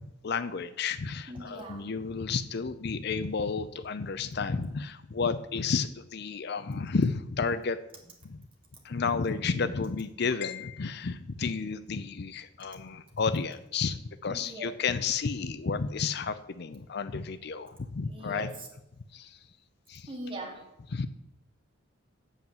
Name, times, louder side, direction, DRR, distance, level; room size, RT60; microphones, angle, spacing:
voice 1, 0.2-7.8 8.2-8.4 8.8-18.5 19.1-19.5 19.9-20.1 20.9-21.1, left 5 dB, 55° left, 13 dB, 0.5 m, -31 dB
voice 2, 1.3-1.9 12.7-12.8 13.1-13.2 14.3-14.7 18.1-18.7 20.1-20.7, right 1 dB, 25° right, -1 dB, 2.4 m, -41 dB
8.3 x 7.2 x 7.7 m, 0.85 s
head